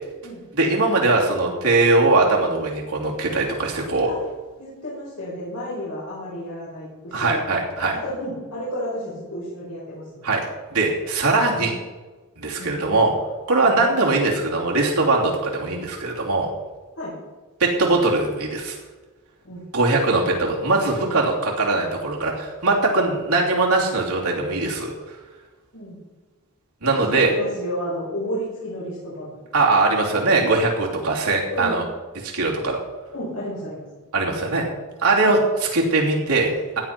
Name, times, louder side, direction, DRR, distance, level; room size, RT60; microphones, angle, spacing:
voice 1, 0.5-4.1 7.1-8.0 10.2-10.4 10.7-11.7 12.4-13.1 13.5-16.5 17.6-18.8 19.7-24.9 26.8-27.3 29.5-31.8 32.2-32.8 34.1-34.6 35.0-36.8, right 3 dB, 85° right, -2 dB, 3.1 m, -21 dB
voice 2, 4.6-7.4 7.9-10.3 11.6-11.7 12.6-12.7 13.6-13.8 17.0-17.1 19.4-19.6 25.7-26.0 26.9-29.3 31.5-31.8 33.1-33.9 35.1-35.3, equal, 80° left, -8 dB, 5.4 m, -31 dB
16.0 x 10.5 x 4.5 m, 1.3 s
head